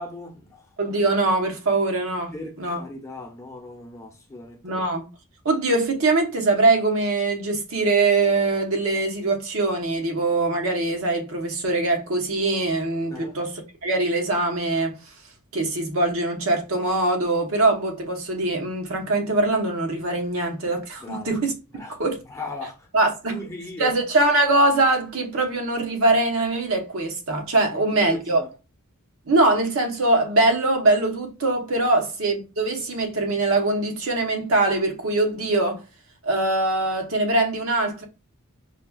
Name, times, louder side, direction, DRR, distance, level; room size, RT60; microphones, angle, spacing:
voice 1, 0.0-0.6 2.3-4.9 13.1-13.4 21.0-21.3 21.7-21.9 22.3-22.9 23.3-23.9 27.7-28.5 32.0-32.1, left 2 dB, 15° left, 0.8 m, -38 dB
voice 2, 0.8-2.8 4.6-5.0 5.4-15.1 15.5-21.5 21.9-22.2 22.9-23.4 23.8-28.4 29.3-35.8 36.2-38.0, right 2 dB, 65° right, 0.9 m, -22 dB
4.9 x 2.3 x 2.3 m
head